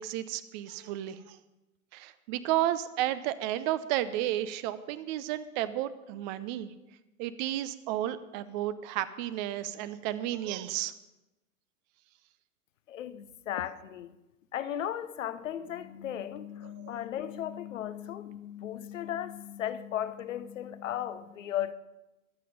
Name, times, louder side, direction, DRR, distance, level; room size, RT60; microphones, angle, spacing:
voice 1, 0.0-1.4 1.9-6.7 7.2-10.9 16.8-16.9, right 13 dB, 30° right, 0.7 m, -32 dB
voice 2, 12.9-14.1 14.5-21.7, left 10 dB, 60° left, 0.9 m, -36 dB
22.5 x 7.6 x 5.3 m
figure-of-eight pair, 100°, 43 cm